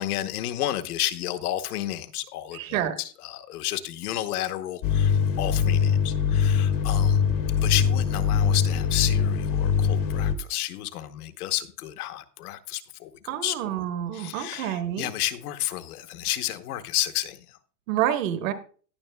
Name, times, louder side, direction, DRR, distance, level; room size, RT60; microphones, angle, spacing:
voice 1, 0.0-7.2 7.6-13.1 13.4-13.6 14.1-17.4, left 14 dB, 65° left, 1.0 m, -31 dB
voice 2, 2.5-3.0 13.3-15.1 17.9-18.5, right 11 dB, 50° right, 1.3 m, -28 dB
sound 1, 4.8-10.4, left 7 dB, 35° left, 0.8 m, -22 dB
19.0 x 6.3 x 2.2 m
supercardioid pair, 165°, 49 cm